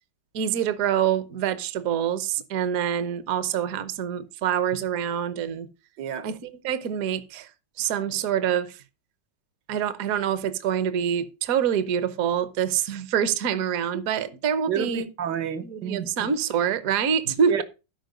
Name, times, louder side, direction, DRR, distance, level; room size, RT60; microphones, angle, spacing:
voice 1, 0.3-5.7 6.2-7.5 7.8-8.8 9.7-15.1 15.6-17.6, right 8 dB, 55° right, 1.2 m, -26 dB
voice 2, 14.7-16.3 17.5-17.6, right 9 dB, 75° right, 1.6 m, -30 dB
13.0 x 5.1 x 5.1 m
omnidirectional pair, 1.9 m